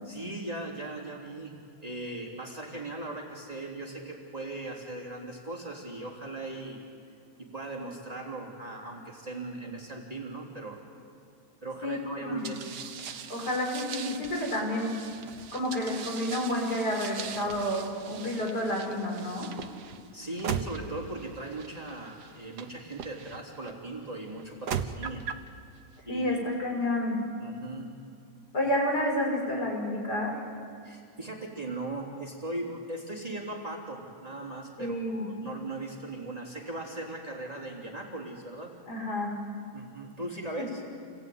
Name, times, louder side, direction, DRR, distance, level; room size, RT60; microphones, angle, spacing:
voice 1, 0.0-6.8 7.4-10.8 11.6-12.7 20.1-25.3 26.1-26.2 27.4-27.9 30.8-38.8 39.7-40.8, right 2 dB, 20° right, -2 dB, 3.5 m, -39 dB
voice 2, 11.8-12.5 13.3-15.0 15.5-19.5 26.1-27.2 28.5-30.4 34.8-35.3 38.9-39.4 40.6-40.7, left 1 dB, 65° left, -1 dB, 6.2 m, -30 dB
sound 1, 12.4-23.7 24.4-25.5, right 7 dB, 70° right, 1.6 m, -40 dB
28.5 x 20.0 x 9.5 m, 2.4 s
omnidirectional pair, 1.9 m